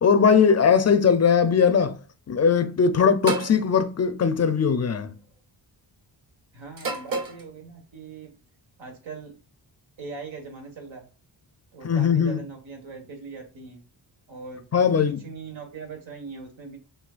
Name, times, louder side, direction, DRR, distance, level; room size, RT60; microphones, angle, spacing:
voice 1, 0.0-1.9 2.3-5.1 11.8-12.4 14.7-15.2, left 6 dB, 35° left, 0.6 m, -20 dB
sound 1, 3.3-3.6 4.8-5.1 6.8-7.4, right 4 dB, 45° right, 1.3 m, -29 dB
voice 2, 6.5-8.3 8.8-9.3 10.0-11.1 11.7-13.8 14.3-14.6 14.9-16.8, right 4 dB, 80° right, 1.6 m, -40 dB
6.2 x 2.7 x 2.4 m
cardioid pair, 75°, 46 cm